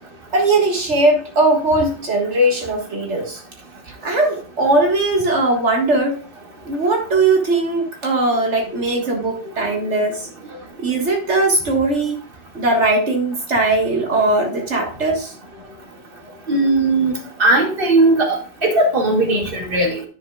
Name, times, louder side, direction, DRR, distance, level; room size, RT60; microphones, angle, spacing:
voice 1, 0.3-3.4 4.0-6.2 6.7-10.3 10.8-12.2 12.5-15.3, right 2 dB, 85° right, 1 dB, 2.0 m, -19 dB
voice 2, 16.5-17.1 17.4-20.0, right 2 dB, 50° right, 2 dB, 2.3 m, -17 dB
10.5 x 8.4 x 2.3 m, 0.39 s
omnidirectional pair, 1.2 m